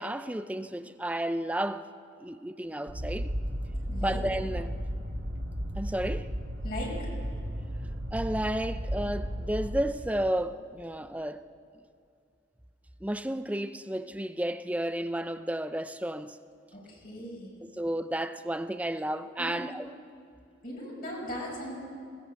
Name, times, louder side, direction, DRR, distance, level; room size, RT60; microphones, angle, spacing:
voice 1, 0.0-1.9 2.2-3.3 4.0-4.7 5.8-6.3 8.1-11.4 13.0-16.4 17.6-19.9, right 1 dB, 5° right, 0.5 m, -32 dB
sound 1, 2.9-9.8, equal, 70° right, 3.5 m, -34 dB
voice 2, 3.9-4.2 6.6-6.9 16.7-17.5 19.4-19.6 20.6-21.8, left 1 dB, 50° left, 5.7 m, -38 dB
21.0 x 18.5 x 7.7 m
head